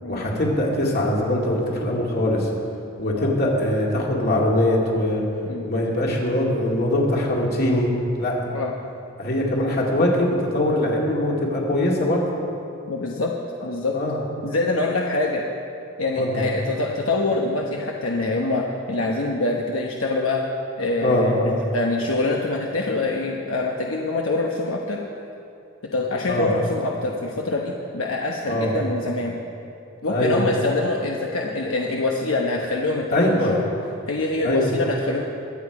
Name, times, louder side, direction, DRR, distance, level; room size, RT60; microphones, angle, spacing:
voice 1, 0.1-2.5 3.0-5.2 5.6-7.9 8.2-8.4 9.2-12.2 13.9-14.2 16.2-16.4 21.0-21.5 26.3-26.5 28.5-28.7 30.1-30.5 33.1-33.6 34.4-34.7, left 1 dB, 50° left, -2 dB, 2.3 m, -22 dB
voice 2, 12.9-13.3 13.6-14.0 14.4-15.4 16.0-20.4 20.8-25.0 25.9-29.4 30.0-33.7 34.1-35.2, left 2 dB, 75° left, 0 dB, 1.0 m, -25 dB
21.5 x 8.4 x 4.8 m, 2.7 s
head